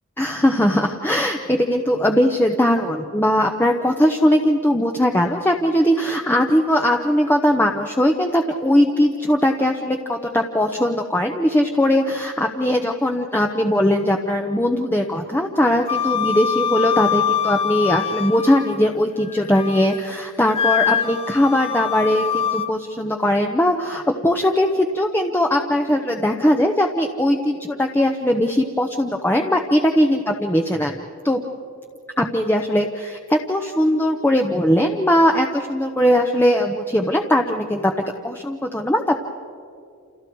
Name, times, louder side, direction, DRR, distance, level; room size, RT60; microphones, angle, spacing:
voice 1, 0.2-30.9 31.2-31.4 32.2-37.9 38.2-39.2, equal, 10° left, 3 dB, 0.8 m, -20 dB
Wind instrument woodwind instrument, 15.9-18.9 19.3-20.0 20.5-22.7, left 8 dB, 25° left, 0.5 m, -24 dB
29.5 x 28.5 x 4.7 m, 2.4 s
head